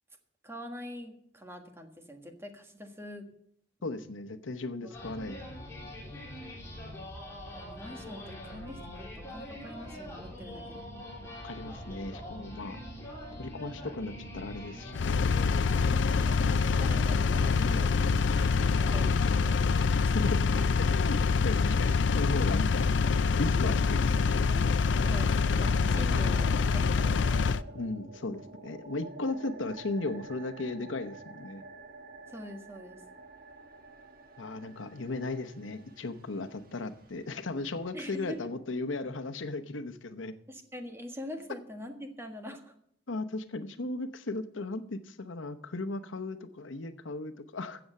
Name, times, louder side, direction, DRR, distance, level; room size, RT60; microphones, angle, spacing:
voice 1, 0.4-3.3 4.8-5.0 5.3-5.5 7.5-10.8 16.3-17.9 18.4-19.6 20.0-20.1 20.6-21.0 25.0-25.3 25.6-27.3 32.3-33.0 37.9-38.5 40.5-42.7, equal, 15° right, 5 dB, 1.5 m, -44 dB
voice 2, 3.8-5.4 11.4-12.8 13.4-15.3 19.8-19.9 20.1-20.4 20.8-21.2 21.4-22.9 23.4-24.4 27.7-31.6 34.4-40.3 43.1-47.8, left 2 dB, 90° left, 8 dB, 0.9 m, -36 dB
sound 1, 4.9-19.5, left 1 dB, 15° left, 3.5 m, -43 dB
Engine, 14.9-27.6, left 5 dB, 65° left, 0.4 m, -25 dB
sound 2, 21.1-38.5, right 2 dB, 50° right, 1.5 m, -50 dB
15.5 x 7.0 x 6.6 m, 0.69 s
head